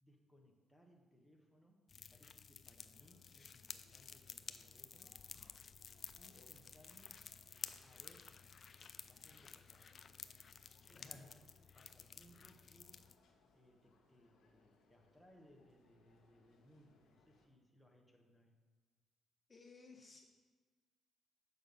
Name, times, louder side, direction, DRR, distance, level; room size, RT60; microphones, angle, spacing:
voice 1, 0.0-5.2 6.2-7.2 7.8-8.4 9.0-9.9 10.9-11.4 11.7-13.1 13.5-18.6, equal, ahead, 1 dB, 1.2 m, -67 dB
sound 1, 1.9-13.1, left 6 dB, 45° left, 0.4 m, -53 dB
sound 2, 2.8-17.5, left 3 dB, 75° left, 1.1 m, -73 dB
voice 2, 10.9-11.3 19.5-20.2, left 3 dB, 30° left, 1 dB, 1.1 m, -58 dB
6.7 x 5.4 x 5.4 m, 1.4 s
cardioid pair, 90°, 0 cm